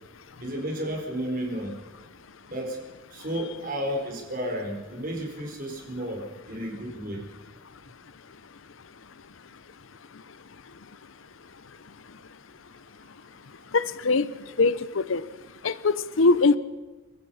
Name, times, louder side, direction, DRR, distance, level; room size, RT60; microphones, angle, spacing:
voice 1, 0.4-1.7 2.5-2.8 3.1-7.2, equal, 45° right, 1 dB, 4.6 m, -32 dB
voice 2, 13.7-14.3 14.6-15.2 15.6-16.6, left 3 dB, 70° left, 16 dB, 0.7 m, -22 dB
29.5 x 16.5 x 5.7 m, 1.2 s
head